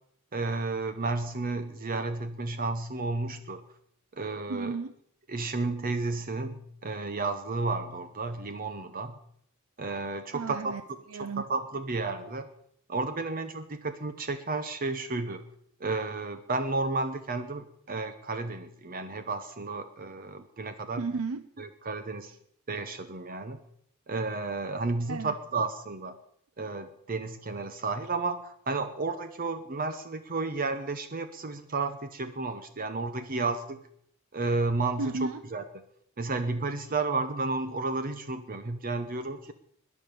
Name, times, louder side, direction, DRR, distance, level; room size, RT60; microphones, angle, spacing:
voice 1, 0.3-3.6 4.1-4.8 5.3-9.2 9.8-10.7 11.4-12.5 12.9-15.4 15.8-21.0 21.6-22.4 22.7-23.6 24.1-26.2 26.6-33.8 34.3-35.1 35.5-35.6 36.2-39.5, right 3 dB, 40° right, 9 dB, 0.8 m, -32 dB
voice 2, 4.5-4.9 10.3-10.8 11.1-11.5 21.0-21.5 25.1-25.3 35.0-35.4, right 4 dB, 75° right, 12 dB, 0.6 m, -33 dB
21.5 x 7.3 x 6.7 m, 0.69 s
head